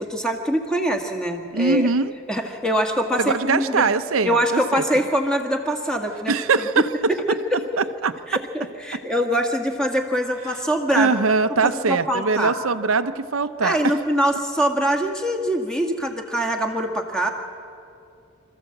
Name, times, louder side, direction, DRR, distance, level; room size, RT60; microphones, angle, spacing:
voice 1, 0.0-1.9 2.3-3.9 4.2-6.3 6.8-6.9 7.5-7.6 8.3-11.1 11.6-12.5 13.6-17.3, equal, 5° left, 3 dB, 1.6 m, -23 dB
voice 2, 1.5-2.1 3.2-4.8 6.3-6.9 7.8-8.1 10.9-13.8, right 4 dB, 75° right, 10 dB, 0.7 m, -21 dB
26.0 x 14.0 x 7.8 m, 2.5 s
head